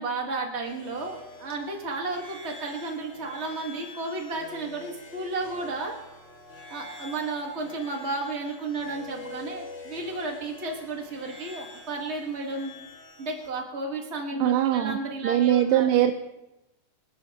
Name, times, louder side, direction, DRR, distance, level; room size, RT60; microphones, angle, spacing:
voice 1, 0.0-6.0 6.7-12.7 13.2-16.0, right 3 dB, 50° right, 1 dB, 0.7 m, -33 dB
sound 1, 0.6-13.5, left 2 dB, 25° left, 3.4 m, -46 dB
voice 2, 14.4-15.0 15.2-16.1, right 12 dB, 80° right, 5 dB, 2.3 m, -21 dB
26.0 x 11.5 x 2.9 m, 0.96 s
omnidirectional pair, 3.9 m